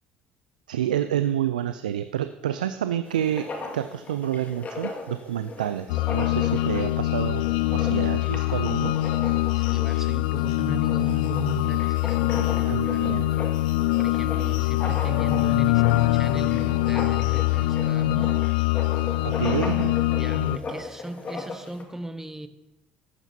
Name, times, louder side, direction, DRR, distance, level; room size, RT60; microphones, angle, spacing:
voice 1, 0.7-7.4 7.7-8.9 12.4-13.3 19.2-19.9, right 10 dB, 90° right, 11 dB, 0.3 m, -29 dB
Writing, 3.1-21.8, left 3 dB, 35° left, 1.9 m, -38 dB
sound 1, 5.9-20.6, left 16 dB, 75° left, 0.4 m, -23 dB
voice 2, 9.5-13.2 14.0-18.3 20.2-22.5, right 1 dB, 10° right, 10 dB, 1.0 m, -36 dB
14.5 x 11.5 x 2.8 m, 0.97 s
hypercardioid pair, 60°, 4 cm